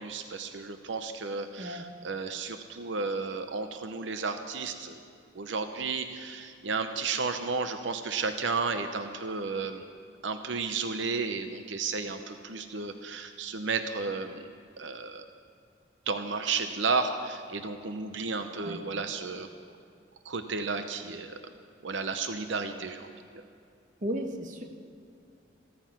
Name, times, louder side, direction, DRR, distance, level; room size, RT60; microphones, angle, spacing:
voice 1, 0.0-5.0 5.3-9.8 10.2-14.5 14.8-15.3 16.1-19.5 20.2-21.4 21.8-23.1 23.3-23.4, right 4 dB, 85° right, 8 dB, 0.8 m, -33 dB
voice 2, 24.0-24.6, equal, 45° right, 3 dB, 1.3 m, -34 dB
15.0 x 14.0 x 5.9 m, 2.5 s
head